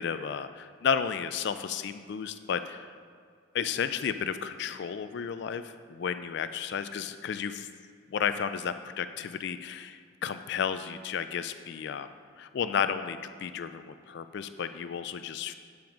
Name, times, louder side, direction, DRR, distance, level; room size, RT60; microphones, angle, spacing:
voice 1, 0.0-2.9 3.5-7.7 8.1-12.1 12.4-15.5, left 7 dB, 60° left, 11 dB, 0.3 m, -32 dB
8.8 x 5.9 x 5.0 m, 2.1 s
head